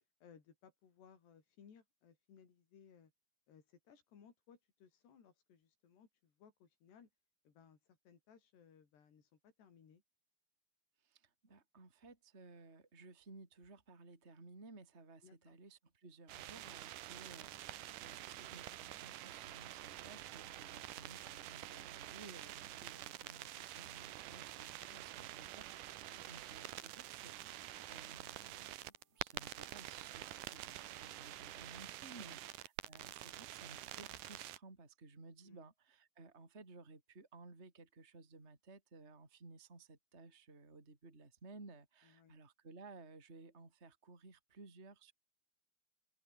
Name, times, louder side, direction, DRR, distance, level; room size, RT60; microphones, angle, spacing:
voice 1, 0.2-3.1 3.5-7.1 7.5-10.0 15.2-15.6 24.8-25.2 26.1-26.2 32.1-32.4 35.4-35.6 42.0-42.3, left 7 dB, 85° left, 6.1 m, -63 dB
voice 2, 11.0-28.7 29.1-45.1, right 3 dB, 15° right, 3.6 m, -58 dB
sound 1, 16.3-34.6, right 14 dB, 70° right, 2.1 m, -48 dB
sound 2, 16.9-31.2, left 1 dB, 5° left, 3.8 m, -77 dB
omnidirectional pair, 4.7 m